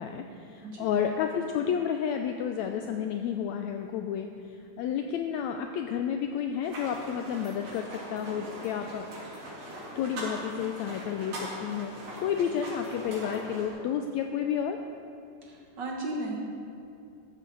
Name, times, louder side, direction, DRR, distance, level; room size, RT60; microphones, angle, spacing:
voice 1, 0.0-4.3 4.8-9.0 10.0-11.9 12.2-14.8, left 8 dB, 90° left, 5 dB, 1.6 m, -31 dB
voice 2, 0.6-1.0 15.4-16.4, right 2 dB, 55° right, -1 dB, 1.2 m, -35 dB
sound 1, 6.6-13.7, right 1 dB, 80° right, 5.0 m, -41 dB
14.5 x 13.0 x 3.9 m, 2.5 s
omnidirectional pair, 3.8 m